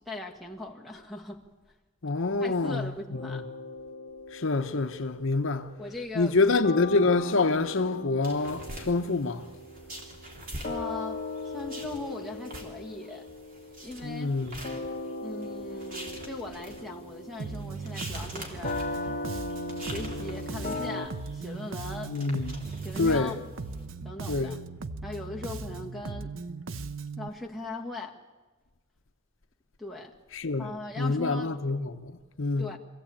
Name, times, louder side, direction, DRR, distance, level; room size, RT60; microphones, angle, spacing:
voice 1, 0.0-1.4 2.4-3.5 5.8-6.4 10.6-11.3 11.5-13.3 13.8-14.3 15.2-18.8 19.8-22.1 22.8-23.4 24.0-24.6 25.0-26.3 27.2-28.2 29.8-30.1 30.6-31.5 32.6-32.8, left 2 dB, ahead, 1.8 m, -39 dB
voice 2, 2.0-3.4 4.3-5.7 6.1-9.5 14.0-14.6 22.1-22.7 23.0-23.4 24.3-24.6 30.3-30.7 31.0-32.7, left 3 dB, 65° left, 0.9 m, -27 dB
sound 1, 3.1-6.4 6.6-21.1, left 2 dB, 35° left, 1.6 m, -39 dB
sound 2, 8.2-23.8, right 1 dB, 40° right, 3.3 m, -45 dB
Bass guitar, 17.4-27.3, right 4 dB, 65° right, 0.7 m, -38 dB
24.0 x 15.5 x 8.7 m
head